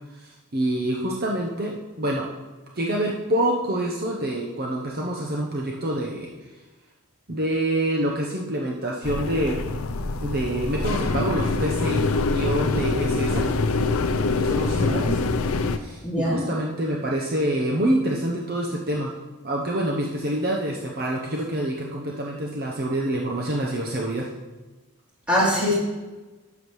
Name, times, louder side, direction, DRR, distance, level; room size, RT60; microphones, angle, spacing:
voice 1, 0.2-2.3 2.7-6.3 7.3-9.6 10.2-13.5 14.4-15.2 15.6-19.1 19.4-24.2, right 1 dB, 45° right, -2 dB, 0.9 m, -26 dB
sound 1, 9.0-15.8, left 3 dB, 70° left, 0.6 m, -24 dB
voice 2, 14.7-15.1 16.0-16.4 25.3-25.7, equal, 5° right, -8 dB, 3.2 m, -23 dB
12.0 x 7.2 x 3.2 m, 1.2 s
head